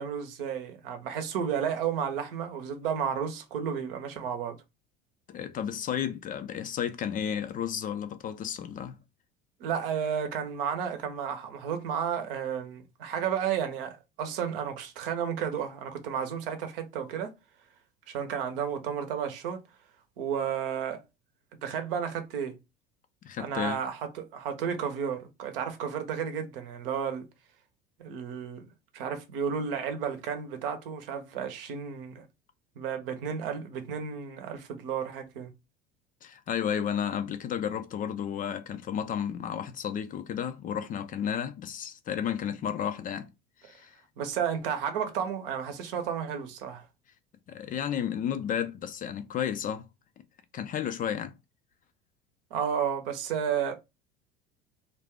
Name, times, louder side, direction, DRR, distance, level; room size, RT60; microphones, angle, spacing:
voice 1, 0.0-4.6 9.6-17.3 18.1-19.6 20.2-21.0 21.6-22.6 23.4-27.3 28.0-28.7 28.9-32.2 32.8-35.5 44.2-46.8 52.5-53.8, right 8 dB, 70° right, 0.8 m, -32 dB
voice 2, 5.3-9.0 23.2-23.8 36.2-43.3 43.6-43.9 47.5-49.9 50.2-50.3 50.5-51.3, left 9 dB, 30° left, 0.4 m, -32 dB
2.5 x 2.2 x 3.5 m
hypercardioid pair, 75°, 29 cm